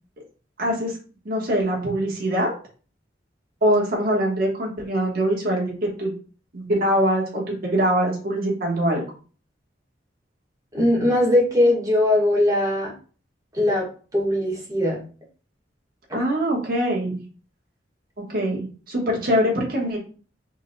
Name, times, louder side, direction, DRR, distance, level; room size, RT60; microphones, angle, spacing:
voice 1, 0.6-0.9 1.2-2.5 3.6-6.1 6.5-9.0 16.1-17.2 18.2-20.0, equal, 55° right, -3 dB, 1.3 m, -23 dB
voice 2, 10.7-12.9 13.5-13.9 14.1-15.0, left 1 dB, 20° right, -3 dB, 1.4 m, -20 dB
5.1 x 3.2 x 2.2 m, 0.39 s
head